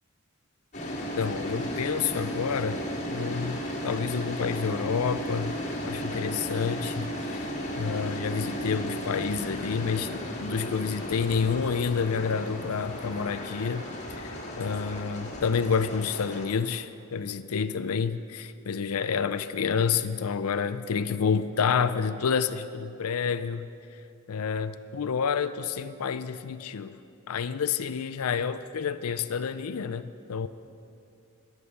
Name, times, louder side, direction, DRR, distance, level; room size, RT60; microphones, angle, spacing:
sound 1, 0.7-16.5, equal, 35° left, 1.9 m, -34 dB
voice 1, 1.0-2.8 3.1-5.5 5.8-7.5 7.8-24.0 24.3-27.0 27.3-30.5, left 6 dB, 90° left, 12 dB, 0.5 m, -29 dB
13.5 x 9.8 x 7.0 m, 2.7 s
head